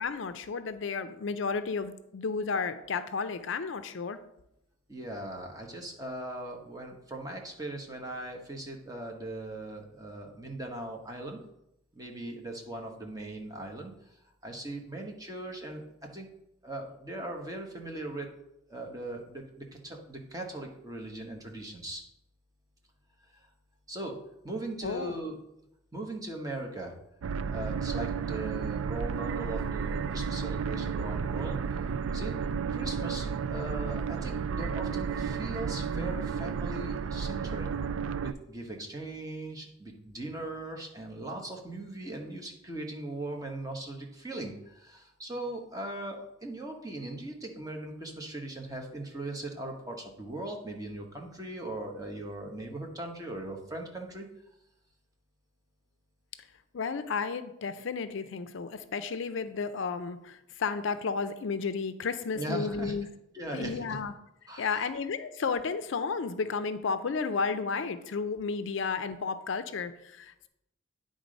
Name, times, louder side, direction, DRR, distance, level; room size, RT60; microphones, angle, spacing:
voice 1, 0.0-4.2 24.8-25.2 56.7-63.1 63.5-64.1 64.6-70.5, left 5 dB, 60° left, 11 dB, 0.4 m, -32 dB
voice 2, 4.9-11.4 11.9-13.9 14.4-15.9 16.1-16.3 16.6-18.3 18.7-22.0 23.3-23.5 23.9-24.2 24.4-25.4 25.9-26.9 27.5-31.8 32.1-32.4 32.7-37.7 38.2-54.3 62.3-63.0 63.3-63.8 64.5-64.9, right 1 dB, 15° right, 1 dB, 1.0 m, -39 dB
sound 1, 27.2-38.3, right 6 dB, 75° right, 0.4 m, -32 dB
9.5 x 3.8 x 5.2 m, 0.83 s
head